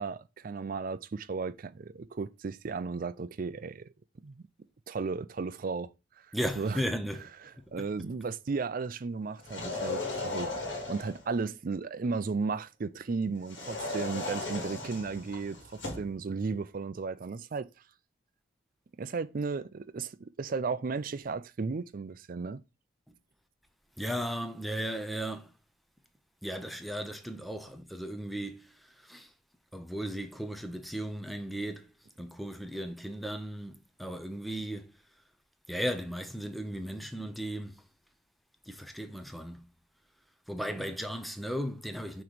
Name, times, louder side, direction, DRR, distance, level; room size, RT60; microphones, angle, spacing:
voice 1, 0.0-3.9 4.2-4.4 4.9-5.9 6.3-6.8 7.5-10.5 10.9-17.7 19.0-22.6, right 4 dB, 45° right, 0.4 m, -35 dB
voice 2, 6.3-7.3 7.6-7.9 24.0-25.5 26.4-28.7 29.0-29.3 29.7-31.9 32.2-34.9 35.7-37.8 38.7-39.7 40.5-42.2, equal, ahead, 0.6 m, -36 dB
sound 1, 9.4-11.3 13.5-16.1, left 2 dB, 65° left, 1.8 m, -36 dB
6.1 x 3.1 x 5.1 m
head